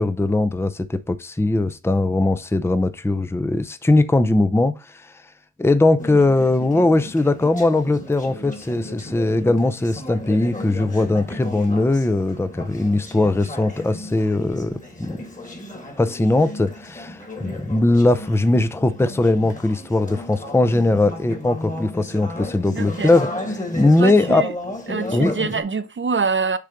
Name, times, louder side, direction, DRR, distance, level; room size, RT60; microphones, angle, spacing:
voice 1, 0.0-5.1 5.6-15.2 16.0-24.4 25.1-25.3, left 2 dB, 10° left, 0.6 m, -20 dB
Conversation / Chatter, 6.0-25.6, left 1 dB, 25° left, 1.9 m, -34 dB
voice 2, 22.7-23.1 24.0-24.5 24.9-26.6, right 5 dB, 40° right, 0.7 m, -24 dB
6.7 x 3.3 x 5.0 m
cardioid pair, 50°, 31 cm